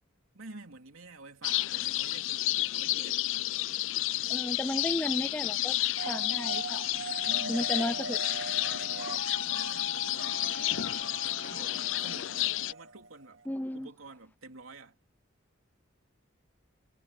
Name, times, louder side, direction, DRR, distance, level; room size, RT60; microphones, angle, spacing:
voice 1, 0.3-3.6 7.2-8.1 8.5-13.4 13.7-15.0, right 3 dB, 90° right, 3.2 m, -50 dB
sound 1, 1.4-12.7, left 16 dB, 70° left, 0.4 m, -31 dB
voice 2, 4.3-5.8 6.1-6.9 7.5-8.2 13.5-13.9, left 1 dB, 10° left, 0.4 m, -33 dB
sound 2, 6.0-13.5, right 2 dB, 70° right, 1.6 m, -40 dB
head